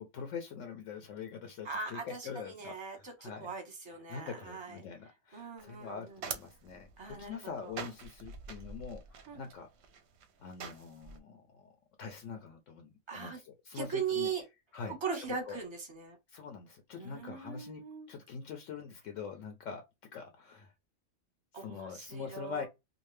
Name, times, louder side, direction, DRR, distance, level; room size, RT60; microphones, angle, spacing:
voice 1, 0.0-3.5 4.1-9.7 10.4-11.7 12.0-14.3 14.7-15.0 15.5-15.6 16.3-17.8 18.1-19.8 20.1-20.7 21.5-22.7, left 6 dB, 70° left, 0.9 m, -44 dB
voice 2, 1.6-4.8 5.3-6.2 7.0-7.7 9.3-9.4 13.1-13.4 13.7-14.4 14.9-16.2 16.9-18.1 21.5-22.7, right 6 dB, 25° right, 0.9 m, -40 dB
sound 1, 5.6-11.2, right 6 dB, 65° right, 0.8 m, -46 dB
2.6 x 2.4 x 3.2 m
omnidirectional pair, 1.4 m